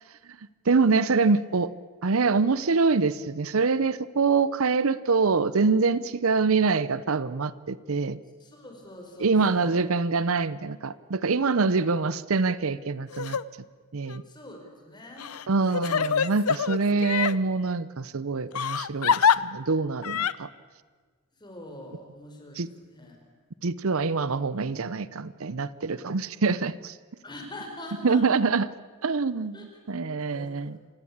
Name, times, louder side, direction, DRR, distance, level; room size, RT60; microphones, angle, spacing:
voice 1, 0.7-1.7 2.0-8.2 9.2-13.4 13.9-14.2 15.5-20.5 22.6-22.7 23.6-27.0 28.0-28.7 29.0-30.8, right 4 dB, 70° right, 18 dB, 0.7 m, -25 dB
voice 2, 8.4-9.8 11.8-12.0 14.2-16.1 16.9-17.1 21.4-23.2 27.2-28.2 29.5-30.8, left 1 dB, 20° left, 2 dB, 4.8 m, -44 dB
Crying sobbing, 13.1-13.4 14.1-14.2 15.2-17.4 18.5-19.4 20.0-20.3, left 7 dB, 80° left, 0.7 m, -25 dB
27.5 x 17.0 x 8.8 m, 1.5 s
head